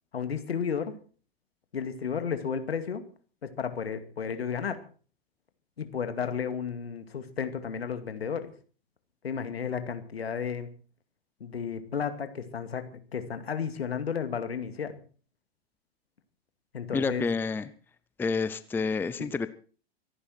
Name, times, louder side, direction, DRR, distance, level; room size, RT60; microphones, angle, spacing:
voice 1, 0.1-1.0 1.7-3.0 3.4-4.8 5.8-8.5 9.2-10.7 11.4-12.8 13.1-14.9 16.7-17.3 19.2-19.3, left 7 dB, 75° left, 9 dB, 2.4 m, -33 dB
voice 2, 16.9-17.7 18.2-19.5, left 4 dB, 5° left, 14 dB, 0.6 m, -29 dB
24.0 x 11.0 x 4.5 m, 0.40 s
figure-of-eight pair, 100°, 31 cm